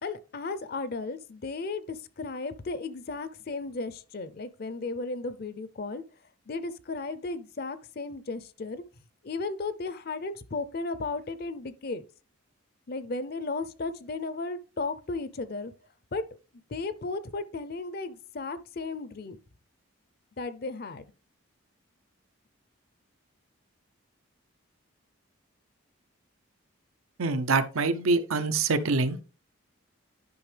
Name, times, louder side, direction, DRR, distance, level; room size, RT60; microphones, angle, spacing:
voice 1, 0.0-6.0 6.5-8.8 9.2-12.0 12.9-15.7 16.1-16.2 16.7-19.4 20.4-21.0, left 3 dB, 45° left, 0.5 m, -35 dB
voice 2, 27.2-29.2, right 3 dB, 80° right, 0.7 m, -25 dB
10.5 x 5.5 x 3.3 m
head